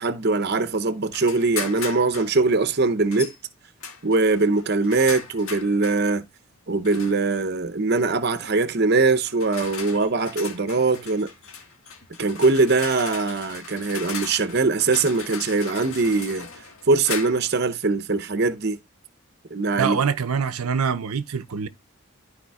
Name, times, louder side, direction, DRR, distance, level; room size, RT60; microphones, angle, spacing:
voice 1, 0.0-3.3 4.0-6.2 6.7-11.3 12.2-16.5 16.9-18.8 19.5-20.0, right 3 dB, 50° right, 0.7 m, -22 dB
sound 1, 1.1-2.3 3.1-3.4 3.8-6.0 6.8-7.4 8.4-8.6 9.2-17.6, left 5 dB, 75° left, 1.9 m, -37 dB
voice 2, 19.8-21.7, right 6 dB, 90° right, 0.7 m, -24 dB
13.0 x 4.9 x 2.3 m
head